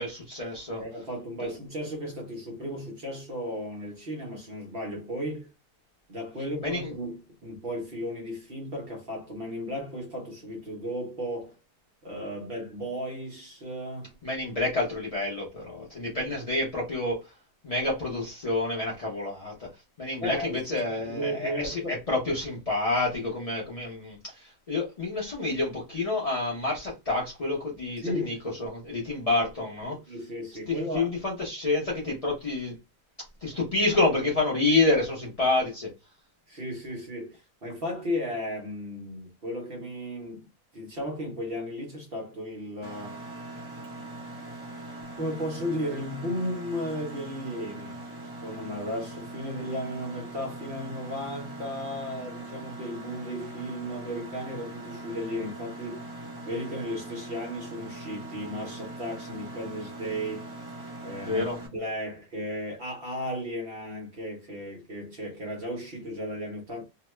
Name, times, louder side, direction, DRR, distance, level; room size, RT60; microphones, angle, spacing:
voice 1, 0.0-0.8 1.4-1.5 6.6-6.9 14.2-17.3 17.6-30.0 30.7-32.8 33.4-35.9 61.2-61.6, left 2 dB, 45° left, 0.4 m, -28 dB
voice 2, 0.8-5.5 6.1-11.5 12.0-14.1 20.2-22.0 28.0-28.3 29.8-31.1 36.5-40.5 40.7-43.2 45.1-48.0 48.4-56.1 56.4-60.5 61.0-66.8, equal, 45° right, 0.8 m, -35 dB
Mechanisms, 42.8-61.7, right 1 dB, 10° right, 0.8 m, -41 dB
2.8 x 2.1 x 3.1 m
omnidirectional pair, 1.8 m